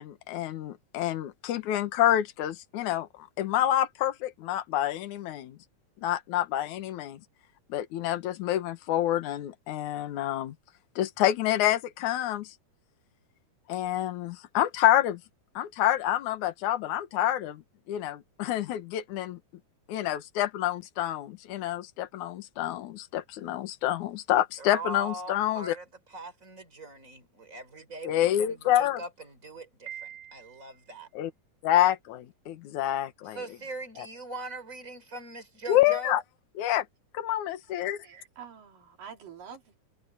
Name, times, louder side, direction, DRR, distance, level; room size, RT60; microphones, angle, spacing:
voice 1, 0.0-5.6 6.0-7.2 7.7-10.5 11.0-12.5 13.7-15.2 15.6-17.6 17.9-19.4 19.9-25.8 28.0-29.0 31.1-31.3 31.6-33.4 34.0-34.1 35.7-36.2 36.6-36.9 37.1-38.0, left 12 dB, 70° left, 2.6 m, -27 dB
voice 2, 24.6-31.1 33.2-36.2, right 2 dB, 20° right, 4.8 m, -41 dB
Piano, 29.9-30.9, right 9 dB, 50° right, 3.9 m, -44 dB
voice 3, 37.7-39.8, right 7 dB, 85° right, 5.6 m, -47 dB
omnidirectional pair, 3.8 m